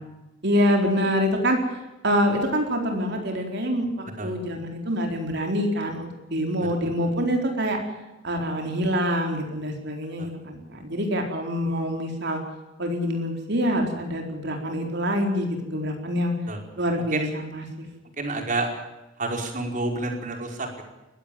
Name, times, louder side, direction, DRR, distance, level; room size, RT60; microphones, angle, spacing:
voice 1, 0.4-1.6 2.0-7.8 8.2-12.4 12.8-16.3 16.8-17.9, equal, 60° right, 3 dB, 4.3 m, -26 dB
voice 2, 18.2-18.7 19.2-20.8, right 2 dB, 40° right, 3 dB, 5.1 m, -29 dB
21.5 x 16.5 x 9.3 m, 1.0 s
head